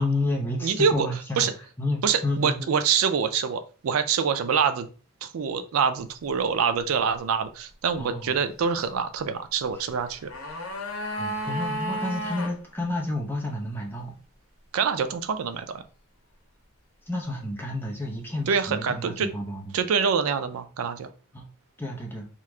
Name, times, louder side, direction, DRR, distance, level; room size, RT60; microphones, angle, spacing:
voice 1, 0.0-1.5 1.8-2.7 8.0-8.4 9.7-9.8 11.2-14.2 17.1-19.6 21.3-21.5 21.8-22.3, left 2 dB, 10° left, -1 dB, 0.7 m, -30 dB
voice 2, 0.6-1.1 1.4-1.5 2.0-4.9 5.2-10.3 14.7-15.8 18.5-19.3 19.7-21.1, right 6 dB, 85° right, 10 dB, 0.4 m, -25 dB
sound 1, 10.0-12.6 12.8-12.9, right 1 dB, 85° left, 0.8 m, -32 dB
3.0 x 2.4 x 3.3 m, 0.37 s
head